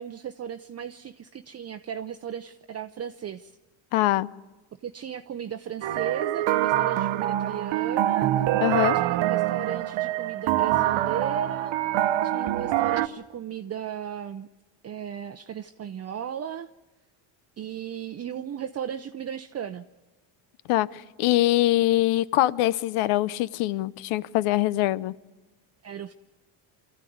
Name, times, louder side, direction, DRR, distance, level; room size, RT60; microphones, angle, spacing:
voice 1, 0.0-3.6 4.8-8.3 8.9-11.8 12.2-14.5 14.8-16.7 17.6-19.8 25.8-26.1, right 9 dB, 30° right, 8 dB, 0.6 m, -36 dB
voice 2, 3.9-4.3 8.6-9.0 20.7-25.1, left 16 dB, 85° left, 19 dB, 0.8 m, -23 dB
sound 1, 5.8-13.1, right 13 dB, 65° right, 1.0 m, -25 dB
24.5 x 14.5 x 9.3 m, 1.2 s
cardioid pair, 105°, 49 cm